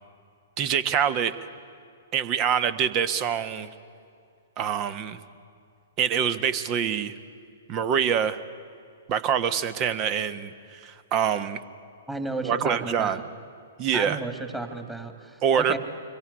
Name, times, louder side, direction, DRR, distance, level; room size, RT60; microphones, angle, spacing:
voice 1, 0.6-1.3 2.1-3.7 4.6-5.2 6.0-7.1 7.7-8.4 9.1-11.6 12.4-13.2 13.8-14.2 15.4-15.8, right 8 dB, 35° right, 14 dB, 1.3 m, -25 dB
voice 2, 12.1-13.2 13.9-15.8, right 2 dB, 10° right, 6 dB, 2.7 m, -33 dB
25.5 x 22.5 x 9.9 m, 2.4 s
figure-of-eight pair, 115°, 0 cm